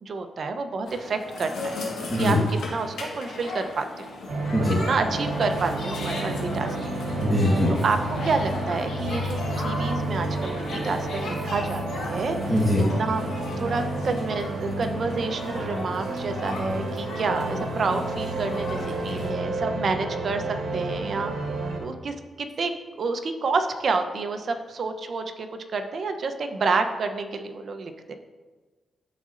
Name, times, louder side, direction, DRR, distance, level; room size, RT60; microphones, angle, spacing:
voice 1, 0.0-1.8 2.1-4.1 4.8-7.0 7.8-12.7 13.0-13.2 13.6-20.4 20.7-21.3 21.8-22.7 23.0-25.5 25.7-28.1, right 4 dB, 60° right, 7 dB, 0.7 m, -29 dB
sound 1, 0.8-19.3, left 3 dB, 90° left, 1.5 m, -37 dB
sound 2, 4.3-21.8, right 2 dB, 80° right, 1.2 m, -31 dB
voice 2, 7.2-7.7 12.5-12.8, left 1 dB, 5° left, -5 dB, 1.3 m, -22 dB
12.0 x 4.1 x 2.5 m, 1.3 s
cardioid pair, 85°, 0 cm